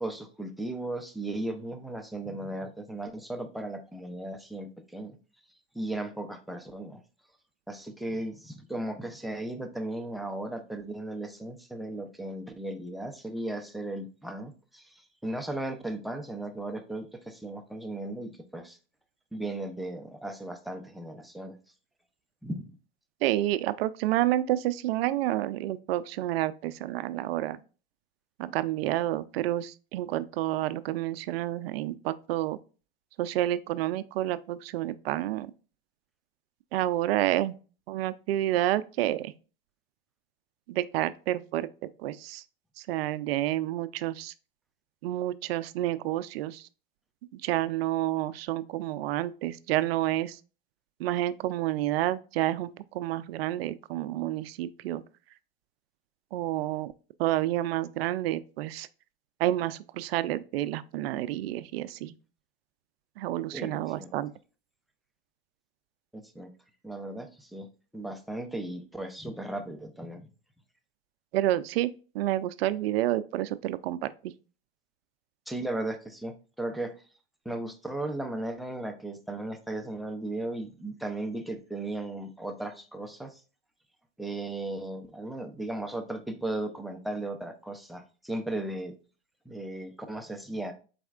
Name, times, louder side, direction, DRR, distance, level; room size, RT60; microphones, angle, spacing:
voice 1, 0.0-5.2 5.7-7.0 7.7-18.8 19.3-21.6 22.4-22.8 63.5-64.1 66.1-66.5 66.8-67.7 67.9-70.3 75.5-77.0 77.5-83.4 84.2-88.9 89.5-90.7, right 1 dB, ahead, 0.5 m, -36 dB
voice 2, 23.2-27.6 28.4-32.6 33.2-35.5 36.7-37.5 37.9-39.3 40.7-41.7 42.0-42.4 42.8-44.3 45.0-46.7 47.3-50.4 51.0-55.0 56.3-56.9 57.2-58.9 59.4-62.1 63.2-64.3 71.3-74.3, right 14 dB, 75° right, 0.5 m, -29 dB
4.3 x 4.1 x 2.3 m
supercardioid pair, 120°, 30 cm